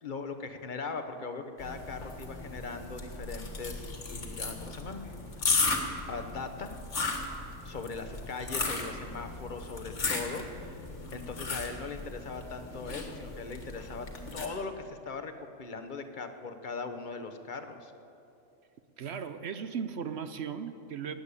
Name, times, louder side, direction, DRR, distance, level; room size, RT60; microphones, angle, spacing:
voice 1, 0.0-5.0 5.4-5.7 6.1-6.7 7.6-14.1 14.3-17.9, left 4 dB, 40° left, 7 dB, 1.1 m, -40 dB
sound 1, 1.6-14.5, left 3 dB, 65° left, 2.0 m, -36 dB
voice 2, 19.0-21.1, right 7 dB, 60° right, 10 dB, 0.9 m, -37 dB
16.5 x 9.7 x 8.4 m, 2.8 s
omnidirectional pair, 1.3 m